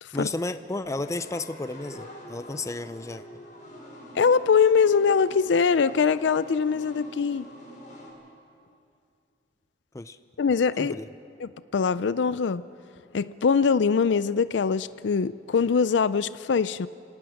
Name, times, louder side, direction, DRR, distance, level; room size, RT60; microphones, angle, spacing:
voice 1, 0.1-3.2 9.9-10.2 10.8-11.1, left 2 dB, 15° left, 11 dB, 0.5 m, -32 dB
sound 1, 1.0-8.1, equal, 45° left, 7.2 m, -46 dB
voice 2, 4.1-7.5 10.4-11.0 11.4-12.6 13.1-16.9, left 5 dB, 80° left, 15 dB, 0.4 m, -23 dB
28.0 x 18.5 x 6.4 m, 2.5 s
head